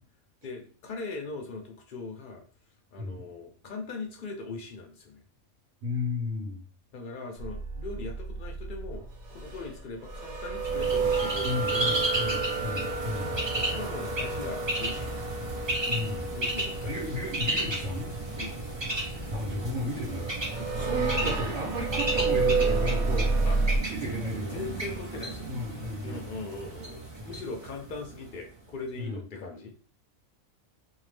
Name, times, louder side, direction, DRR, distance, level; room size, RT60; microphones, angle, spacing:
voice 1, 0.4-2.4 2.9-5.2 6.9-9.0 9.3-12.5 13.5-15.1 16.3-17.2 18.4-18.6 20.5-21.0 23.5-23.6 24.0-24.2 24.5-25.5 26.0-29.7, left 3 dB, 65° left, 2 dB, 0.5 m, -40 dB
voice 2, 5.8-6.6 11.4-13.4 15.9-16.2 16.8-18.1 19.3-20.3 20.7-23.3 23.8-24.6 25.5-26.3 27.2-27.3 29.0-29.2, left 2 dB, 80° right, -4 dB, 1.2 m, -34 dB
sound 1, 7.4-23.8, right 4 dB, 60° right, 1.0 m, -31 dB
Bird, 10.6-28.3, right 2 dB, 30° right, 0.5 m, -34 dB
2.7 x 2.1 x 3.2 m, 0.41 s
omnidirectional pair, 1.4 m